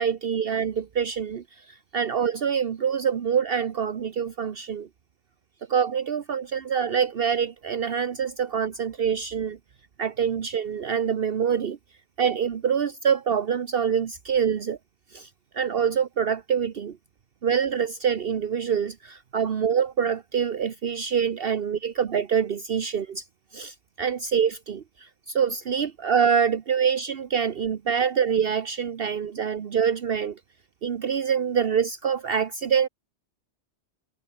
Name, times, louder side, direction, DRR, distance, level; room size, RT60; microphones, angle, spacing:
voice 1, 0.0-4.9 5.7-9.6 10.0-11.8 12.2-14.8 15.1-17.0 17.4-23.2 23.5-30.4 30.8-32.9, right 7 dB, 60° right, 1.1 m, -25 dB
omnidirectional pair, 1.1 m